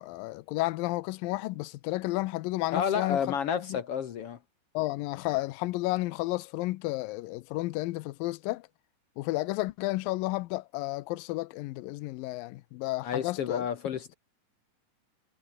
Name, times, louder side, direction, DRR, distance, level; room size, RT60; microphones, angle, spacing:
voice 1, 0.0-3.4 3.6-3.8 4.7-8.7 9.2-13.7, left 19 dB, 85° left, 2.4 m, -32 dB
voice 2, 2.7-4.4 13.0-14.1, left 8 dB, 65° left, 1.5 m, -30 dB
omnidirectional pair, 4.1 m